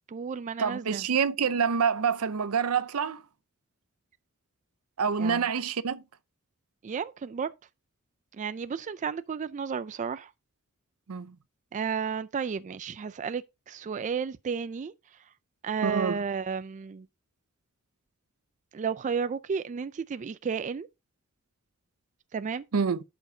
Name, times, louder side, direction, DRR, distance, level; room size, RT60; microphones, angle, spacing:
voice 1, 0.1-1.1 5.2-5.5 6.8-7.5 8.3-10.3 11.7-14.9 15.6-17.1 18.7-20.9 22.3-22.6, right 6 dB, 35° right, 0.3 m, -32 dB
voice 2, 0.6-3.2 5.0-6.0 11.1-11.4 15.8-16.2 22.7-23.0, right 6 dB, 85° right, 0.6 m, -27 dB
11.5 x 5.2 x 2.7 m
head